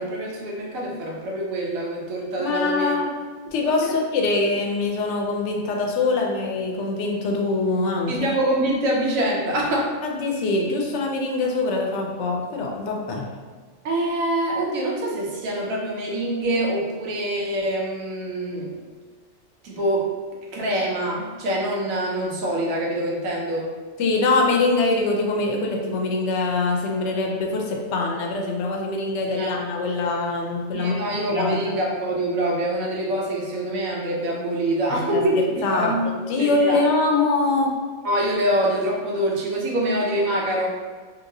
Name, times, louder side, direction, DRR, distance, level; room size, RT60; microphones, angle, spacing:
voice 1, 0.0-2.9 3.8-3.9 8.1-9.9 13.8-18.8 19.6-20.1 20.5-23.7 29.4-29.5 30.7-35.4 35.7-36.0 36.4-36.8 38.0-40.7, right 1 dB, 90° right, -2 dB, 1.1 m, -25 dB
voice 2, 2.4-3.1 3.5-8.1 10.0-13.3 24.0-31.0 31.3-31.8 34.9-37.7, left 3 dB, 70° left, 0 dB, 0.8 m, -23 dB
2.8 x 2.8 x 2.6 m, 1.5 s
omnidirectional pair, 1.4 m